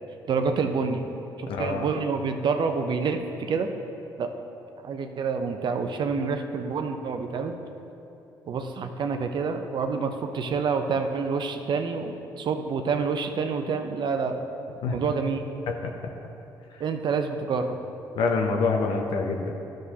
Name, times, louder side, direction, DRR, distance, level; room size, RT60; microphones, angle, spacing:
voice 1, 0.3-1.0 1.4-3.7 4.2-4.3 4.8-7.6 8.5-14.4 14.9-15.4 16.8-17.7, right 5 dB, 55° right, 6 dB, 0.7 m, -27 dB
voice 2, 1.5-1.9 14.8-15.0 15.7-15.9 16.7-16.8 18.2-19.5, left 4 dB, 70° left, 2 dB, 0.7 m, -26 dB
12.5 x 6.4 x 2.9 m, 2.9 s
supercardioid pair, 65°, 9 cm